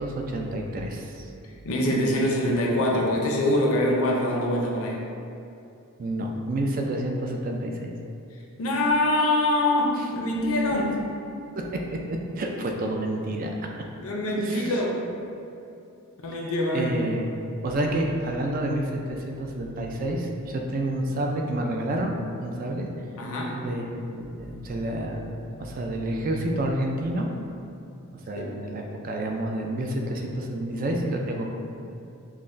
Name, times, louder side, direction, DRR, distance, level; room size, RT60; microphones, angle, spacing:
voice 1, 0.0-1.3 6.0-8.0 10.0-10.1 11.6-12.0 12.4-13.5 14.4-14.7 16.3-17.3 17.6-22.9 23.5-27.3 28.3-31.5, right 1 dB, 40° right, 1 dB, 0.3 m, -29 dB
voice 2, 1.4-5.0 8.6-11.0 14.0-15.0 16.2-16.9 23.2-23.6, left 1 dB, 70° left, -1 dB, 0.6 m, -24 dB
5.7 x 2.1 x 2.5 m, 2.7 s
head